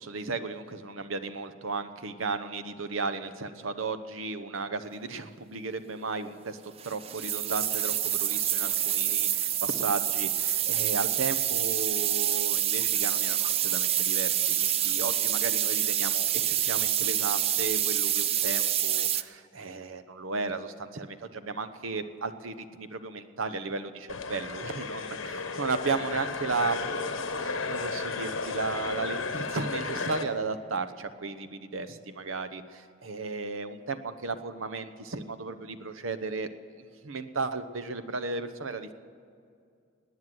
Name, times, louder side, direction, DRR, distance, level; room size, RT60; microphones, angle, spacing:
voice 1, 0.0-24.0 24.3-36.5 37.0-38.9, right 4 dB, 85° right, 10 dB, 0.9 m, -35 dB
sound 1, 6.8-19.2, right 11 dB, 30° right, 0.3 m, -27 dB
sound 2, 24.1-30.2, left 4 dB, 80° left, 1.1 m, -33 dB
18.5 x 9.5 x 7.9 m, 2.4 s
head